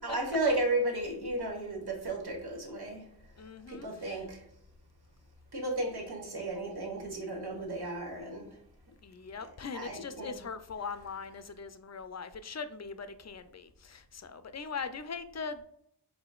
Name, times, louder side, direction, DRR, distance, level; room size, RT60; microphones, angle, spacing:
voice 1, 0.0-3.1 3.7-4.4 5.5-8.6 9.7-10.3, right 2 dB, 65° right, 1.3 m, -34 dB
voice 2, 3.4-4.3 9.0-15.6, left 5 dB, 40° left, 0.5 m, -41 dB
4.9 x 3.8 x 2.4 m
wide cardioid pair, 55°, 41 cm